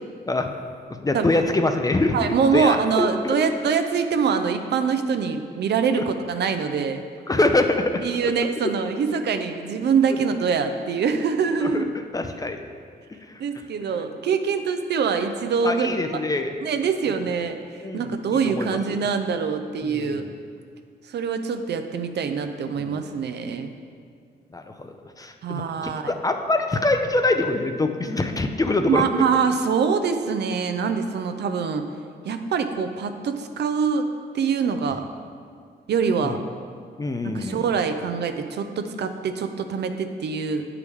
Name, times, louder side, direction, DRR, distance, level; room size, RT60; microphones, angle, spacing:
voice 1, 0.9-2.2 2.5-3.4 5.9-6.0 7.3-8.3 9.1-9.2 11.6-11.8 12.1-12.6 13.3-13.4 15.6-16.5 17.8-18.2 18.4-19.0 19.8-20.2 22.7-23.2 24.5-29.1 36.2-36.4 37.0-37.7, left 2 dB, 20° left, 6 dB, 0.5 m, -25 dB
voice 2, 2.1-7.0 8.0-11.9 13.4-16.0 16.6-17.6 17.9-20.3 21.1-23.7 25.4-26.1 28.9-31.9 32.2-34.1 34.3-35.0 35.9-36.4 37.2-40.7, right 6 dB, 70° right, 7 dB, 0.5 m, -24 dB
8.3 x 4.7 x 3.5 m, 2.1 s
cardioid pair, 80°, 18 cm